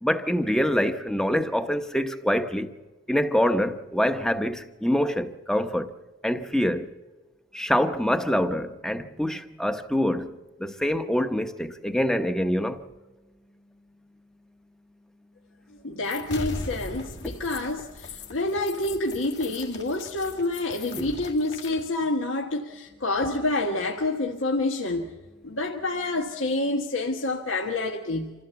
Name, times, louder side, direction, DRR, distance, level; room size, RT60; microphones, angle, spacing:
voice 1, 0.0-2.7 3.1-5.9 6.2-6.9 7.5-12.8 20.9-21.1, equal, 5° left, 0.8 m, -25 dB
voice 2, 15.8-25.1 25.4-28.3, left 2 dB, 80° left, 1.4 m, -28 dB
sound 1, 16.0-21.9, left 2 dB, 60° left, 2.3 m, -39 dB
27.0 x 15.5 x 7.0 m
head